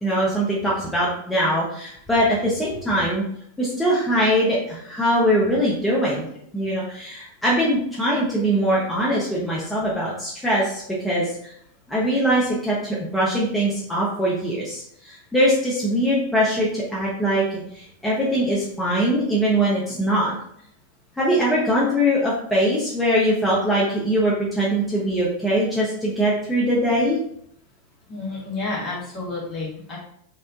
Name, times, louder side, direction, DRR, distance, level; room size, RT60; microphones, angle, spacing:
voice 1, 0.0-3.2 3.6-6.3 6.5-11.5 11.9-20.4 21.2-27.2, equal, 5° left, -7 dB, 0.6 m, -22 dB
voice 2, 28.1-30.0, left 3 dB, 30° left, -4 dB, 1.0 m, -30 dB
3.0 x 2.1 x 2.4 m, 0.68 s
figure-of-eight pair, 90°, 0 cm